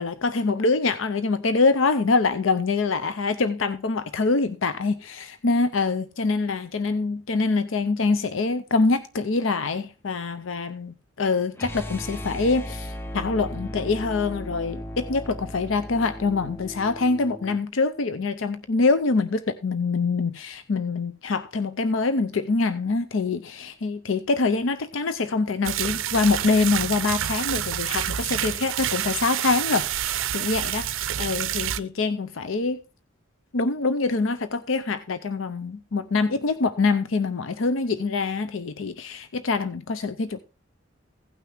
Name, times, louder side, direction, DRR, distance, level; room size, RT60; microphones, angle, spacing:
voice 1, 0.0-32.8 33.5-40.4, left 3 dB, 80° left, 0.6 m, -25 dB
sound 1, 11.6-17.6, equal, 10° left, 0.5 m, -36 dB
sound 2, 25.6-31.8, right 11 dB, 85° right, 0.5 m, -28 dB
16.0 x 5.9 x 3.4 m
head